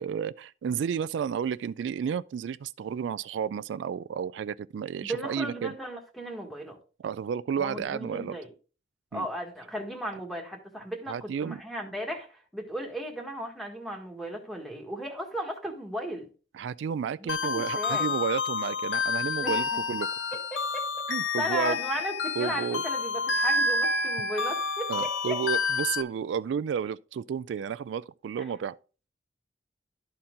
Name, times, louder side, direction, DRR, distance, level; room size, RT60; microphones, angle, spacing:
voice 1, 0.0-5.7 7.0-8.4 9.1-9.3 11.1-11.6 16.5-20.1 21.1-21.8 22.4-22.8 24.9-28.8, right 7 dB, 75° right, 0.3 m, -32 dB
voice 2, 5.0-6.8 7.6-8.5 9.1-16.3 17.2-18.1 19.4-19.6 20.3-20.9 21.4-25.4 28.5-28.6, equal, ahead, 1.5 m, -36 dB
sound 1, 17.3-26.0, left 3 dB, 90° left, 0.8 m, -29 dB
12.0 x 4.3 x 3.7 m
head